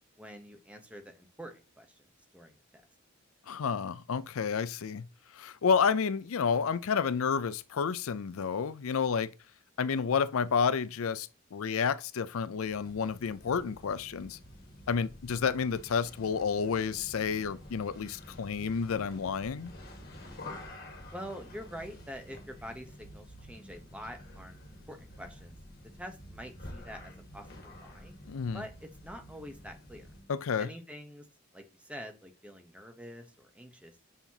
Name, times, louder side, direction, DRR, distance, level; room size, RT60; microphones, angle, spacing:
voice 1, 0.2-2.0 2.3-2.8 21.1-24.6 24.9-25.6 26.0-28.1 28.5-30.1 30.6-31.3 31.5-34.0, equal, 5° right, 0.9 m, -46 dB
voice 2, 3.5-5.0 5.3-9.3 9.8-14.4 14.9-19.7 28.3-28.6 30.3-30.7, left 6 dB, 75° left, 0.4 m, -30 dB
sound 1, 12.6-30.3, left 1 dB, 45° left, 1.7 m, -49 dB
7.0 x 5.6 x 2.8 m
head